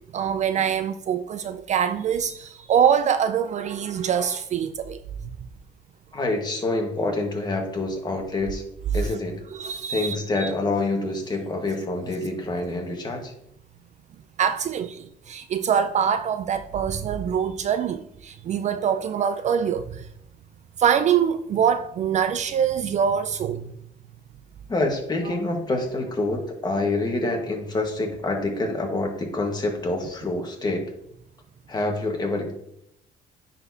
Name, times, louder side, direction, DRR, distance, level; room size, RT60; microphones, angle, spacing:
voice 1, 0.1-5.0 9.0-9.2 9.5-10.5 14.4-20.1 20.8-23.6 25.2-25.3, right 8 dB, 45° right, 0.4 m, -24 dB
voice 2, 6.1-8.6 8.9-9.4 9.9-13.3 24.7-30.8 31.7-32.5, left 2 dB, 25° left, 1.5 m, -26 dB
9.7 x 4.1 x 2.8 m
cardioid pair, 110°, 17 cm